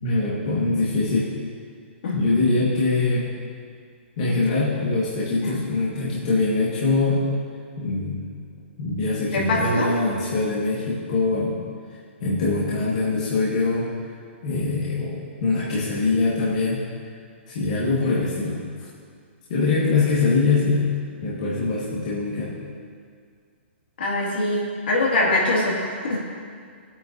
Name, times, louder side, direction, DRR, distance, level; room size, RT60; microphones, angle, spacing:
voice 1, 0.0-1.3 2.1-3.3 4.2-7.3 7.8-8.2 8.8-11.5 12.2-13.9 14.4-16.8 17.5-18.9 19.5-20.9 21.2-22.5, left 3 dB, 35° left, -7 dB, 1.6 m, -23 dB
voice 2, 9.3-9.9 18.0-18.2 24.0-26.2, left 2 dB, 55° left, -3 dB, 2.3 m, -23 dB
20.5 x 8.7 x 2.7 m, 2.1 s
hypercardioid pair, 180°, 7 cm